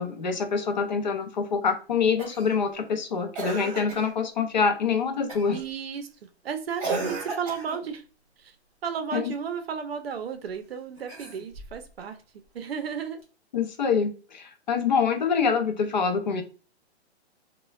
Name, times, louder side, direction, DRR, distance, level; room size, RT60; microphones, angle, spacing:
voice 1, 0.0-5.6 9.1-9.3 13.5-16.4, left 5 dB, 45° left, 6 dB, 0.5 m, -25 dB
Cough, 2.2-2.6 3.3-4.1 5.3-5.6 6.8-7.9 11.0-11.8 13.2-13.3, right 3 dB, 30° right, 0.9 m, -34 dB
voice 2, 5.5-8.0 8.4-8.5 8.8-12.2 12.5-13.2, right 7 dB, 60° right, 8 dB, 0.6 m, -33 dB
3.1 x 2.2 x 2.3 m, 0.35 s
hypercardioid pair, 170°, 34 cm